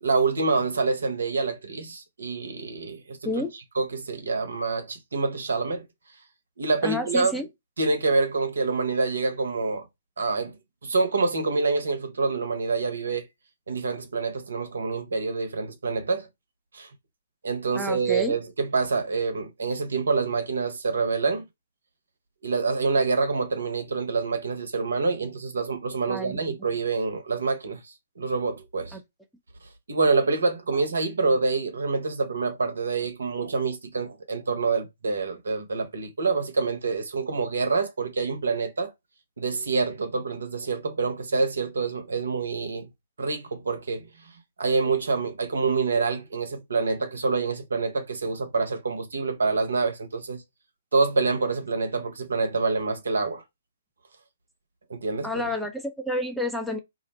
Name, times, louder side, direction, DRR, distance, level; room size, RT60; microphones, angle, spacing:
voice 1, 0.0-3.2 3.8-5.8 6.6-7.3 7.8-9.8 10.2-10.6 10.8-13.3 13.7-16.3 16.7-16.9 17.4-21.4 22.4-29.0 29.9-38.9 39.4-42.9 43.2-44.1 44.6-50.4 50.9-53.4 54.9-55.3, right 4 dB, 75° right, 0.9 m, -26 dB
voice 2, 6.8-7.5 17.7-18.3 26.1-26.4 28.9-29.0 55.2-56.8, left 1 dB, ahead, 0.6 m, -29 dB
2.6 x 2.1 x 4.0 m
figure-of-eight pair, 130°, 0 cm